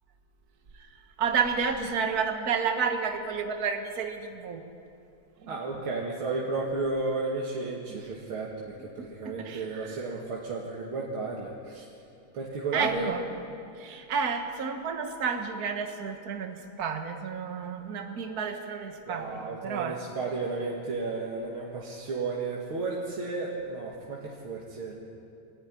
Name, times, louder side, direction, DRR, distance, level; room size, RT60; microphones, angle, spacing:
voice 1, 1.2-4.7 5.4-5.5 7.9-8.0 9.0-10.0 12.7-13.2 13.8-20.0, right 6 dB, 50° right, 5 dB, 1.8 m, -31 dB
voice 2, 5.5-11.8 12.3-13.1 19.1-25.0, right 3 dB, 75° right, -3 dB, 2.9 m, -33 dB
25.0 x 14.5 x 9.8 m, 2.7 s
omnidirectional pair, 2.3 m